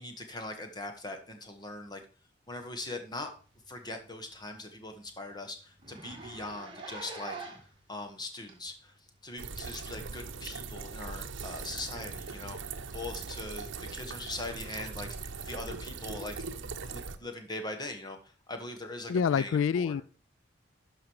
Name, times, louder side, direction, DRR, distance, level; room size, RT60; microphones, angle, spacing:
voice 1, 0.0-2.0 2.5-3.3 3.7-7.4 7.9-8.9 9.2-16.3 16.7-20.0, left 2 dB, 20° left, 1.3 m, -41 dB
Zipper (clothing), 3.3-3.4 3.7-3.8 4.2-4.3 4.6-4.7 5.0-5.1 5.8-7.8 8.5-8.6 9.6-9.7, right 3 dB, 25° right, 2.1 m, -44 dB
sound 1, 9.4-17.2, right 4 dB, 75° right, 0.8 m, -40 dB
voice 2, 19.1-20.0, left 6 dB, 90° left, 0.3 m, -26 dB
11.5 x 5.2 x 4.7 m
head